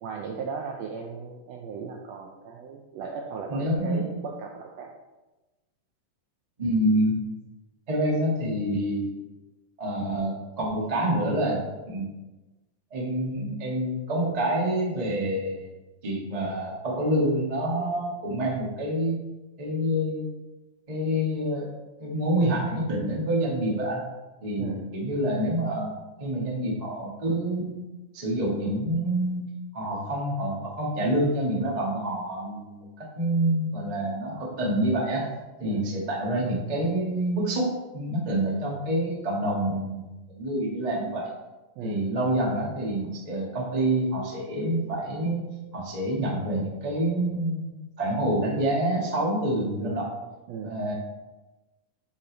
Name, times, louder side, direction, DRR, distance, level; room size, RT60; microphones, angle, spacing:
voice 1, 0.0-4.9 24.6-24.8 35.6-36.0 41.8-42.1 50.5-50.9, right 5 dB, 80° right, 1 dB, 1.5 m, -37 dB
voice 2, 3.5-4.1 6.6-7.2 7.9-9.1 9.8-11.6 11.9-12.1 12.9-15.7 16.0-19.2 19.6-20.3 20.9-21.7 22.0-24.0 24.4-25.9 26.2-27.7 28.1-29.4 29.7-35.3 35.6-41.3 41.8-45.5 45.7-50.1 50.6-50.9, right 1 dB, 35° right, -3 dB, 0.6 m, -27 dB
8.4 x 5.0 x 4.0 m, 1.1 s
omnidirectional pair, 3.6 m